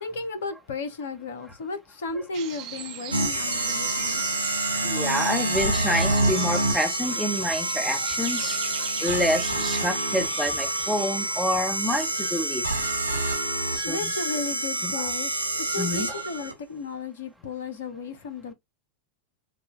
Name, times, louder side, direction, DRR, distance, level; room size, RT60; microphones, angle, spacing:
voice 1, 0.0-4.2 13.8-15.3 15.6-18.5, left 4 dB, 60° left, 1.0 m, -34 dB
sound 1, 2.3-11.5, right 11 dB, 40° right, 0.8 m, -38 dB
sound 2, 3.1-16.5, right 1 dB, 90° left, 1.3 m, -27 dB
sound 3, 3.5-16.5, right 2 dB, 90° right, 1.5 m, -41 dB
voice 2, 4.8-8.6 9.0-12.6 13.7-14.1 14.8-15.1 15.8-16.1, equal, 5° left, 1.2 m, -28 dB
7.1 x 2.5 x 2.3 m
figure-of-eight pair, 90°, 0 cm